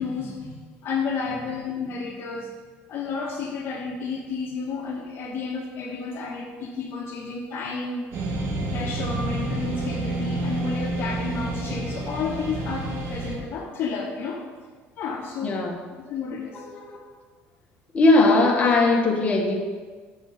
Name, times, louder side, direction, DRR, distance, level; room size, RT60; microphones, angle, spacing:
voice 1, 0.0-2.5 2.9-8.0 8.7-14.4 15.0-15.6 16.1-16.6, left 4 dB, 50° left, -1 dB, 1.1 m, -31 dB
sound 1, 8.1-13.4, right 2 dB, 55° right, 1.4 m, -29 dB
voice 2, 15.4-15.8 16.5-17.0 17.9-19.5, left 2 dB, 25° left, -1 dB, 1.5 m, -19 dB
6.3 x 6.2 x 6.7 m, 1.5 s
cardioid pair, 120°, 5 cm